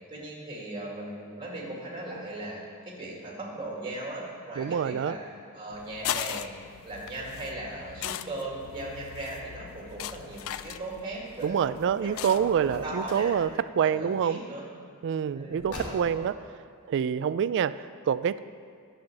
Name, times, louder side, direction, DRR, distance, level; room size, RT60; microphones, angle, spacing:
voice 1, 0.1-5.2 5.5-13.3 13.8-14.7 15.3-16.3, right 1 dB, 20° right, -3 dB, 2.1 m, -38 dB
voice 2, 4.6-5.2 11.4-13.5 13.8-14.4 15.0-16.4 16.9-18.4, right 8 dB, 55° right, 15 dB, 0.3 m, -26 dB
sound 1, 5.7-13.6, left 10 dB, 65° left, 0.3 m, -39 dB
Car, 12.6-13.4 15.5-16.4, left 2 dB, 90° left, 1.9 m, -42 dB
10.5 x 5.7 x 7.6 m, 2.1 s
head